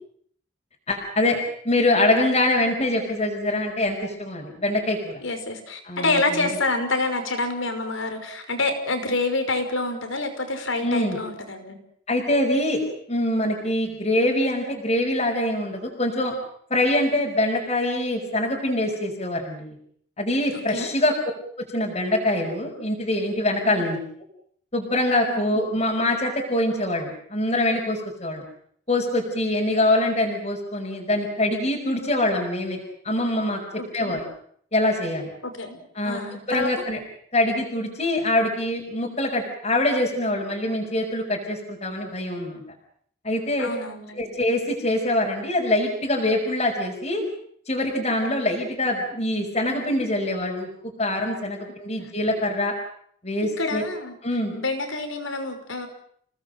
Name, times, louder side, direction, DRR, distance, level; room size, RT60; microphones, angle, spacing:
voice 1, 0.9-1.4 1.6-5.2 5.8-6.5 10.8-11.2 12.1-12.8 13.1-16.3 16.7-19.8 20.2-21.1 21.7-24.0 24.7-28.4 28.9-32.8 33.0-33.6 33.9-34.2 34.7-35.3 36.0-37.0 37.3-42.6 43.2-43.7 44.2-47.2 47.7-50.7 51.0-52.7 53.2-53.8 54.2-54.5, left 1 dB, 35° left, -2 dB, 5.3 m, -24 dB
voice 2, 5.2-11.8 20.5-20.9 23.6-23.8 25.3-25.5 33.8-34.2 35.4-36.7 43.6-44.3 52.0-52.1 53.6-54.2 54.5-55.9, left 2 dB, 85° left, 7 dB, 5.5 m, -27 dB
28.5 x 19.0 x 7.9 m, 0.64 s
head